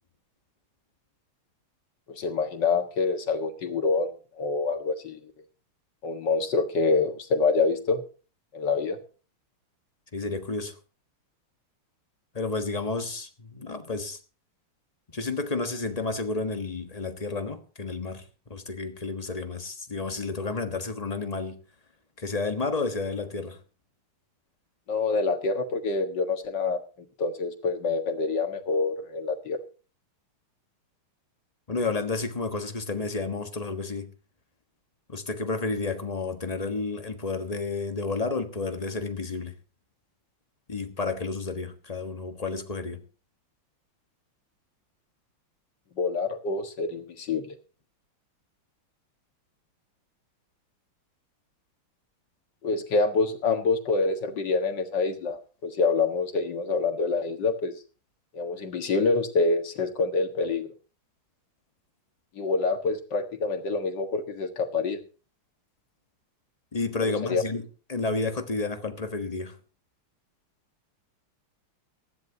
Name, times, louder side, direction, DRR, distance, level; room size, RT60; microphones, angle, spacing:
voice 1, 2.1-4.1 4.4-5.3 6.0-8.0 8.5-9.0 24.9-26.8 27.2-29.6 46.0-47.6 52.6-57.7 58.3-60.7 62.4-65.0 67.0-67.4, left 4 dB, 55° left, 2.2 m, -26 dB
voice 2, 10.1-10.8 12.3-14.2 15.1-18.2 18.5-21.6 22.2-23.6 31.7-34.1 35.1-39.5 40.7-43.0 66.7-69.6, left 3 dB, 20° left, 1.1 m, -31 dB
19.0 x 14.5 x 2.9 m
omnidirectional pair, 2.3 m